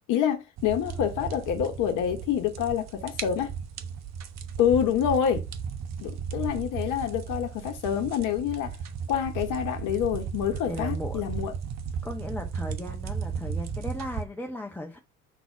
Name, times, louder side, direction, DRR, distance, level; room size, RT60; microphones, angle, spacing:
voice 1, 0.1-3.5 4.6-5.4 6.0-8.8 9.1-11.5, left 9 dB, 50° left, 1.2 m, -27 dB
sound 1, 0.6-14.2, right 6 dB, 40° right, 1.1 m, -35 dB
voice 2, 10.7-11.2 12.0-15.0, left 1 dB, 5° left, 1.0 m, -36 dB
5.8 x 4.0 x 5.8 m
figure-of-eight pair, 65°, 42 cm